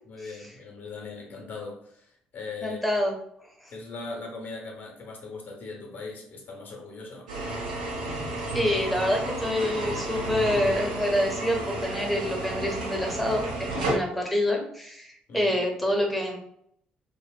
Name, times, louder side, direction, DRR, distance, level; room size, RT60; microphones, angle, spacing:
voice 1, 0.1-3.0 3.7-7.3 15.3-15.6, left 3 dB, 45° left, 0 dB, 0.7 m, -40 dB
voice 2, 2.6-3.1 3.6-3.7 8.5-16.4, left 1 dB, ahead, 0 dB, 0.7 m, -27 dB
sound 1, 7.3-14.0, right 1 dB, 75° right, 0.9 m, -32 dB
2.6 x 2.0 x 2.3 m, 0.69 s
figure-of-eight pair, 45°, 4 cm